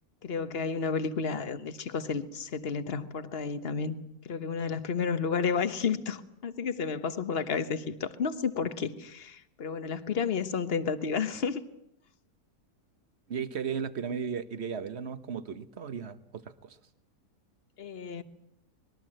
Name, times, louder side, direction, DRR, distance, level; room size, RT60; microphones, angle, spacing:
voice 1, 0.2-3.9 4.2-11.6 17.8-18.2, left 5 dB, 45° left, 11 dB, 1.4 m, -31 dB
voice 2, 13.3-16.8, right 6 dB, 50° right, 11 dB, 1.4 m, -35 dB
25.5 x 21.0 x 7.7 m, 0.77 s
omnidirectional pair, 1.5 m